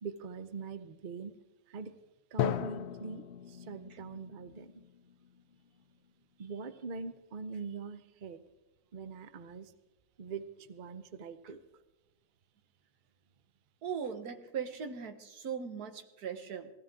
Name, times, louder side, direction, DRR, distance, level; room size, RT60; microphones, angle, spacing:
voice 1, 0.0-1.4 1.7-1.9 2.3-4.8 6.4-8.4 8.9-9.7 10.2-11.6, right 5 dB, 45° right, 11 dB, 0.7 m, -43 dB
Drum, 2.4-6.1, left 10 dB, 60° left, 0.7 m, -38 dB
voice 2, 13.8-16.7, right 7 dB, 80° right, 7 dB, 1.7 m, -39 dB
20.0 x 15.5 x 3.7 m, 1.1 s
omnidirectional pair, 1.6 m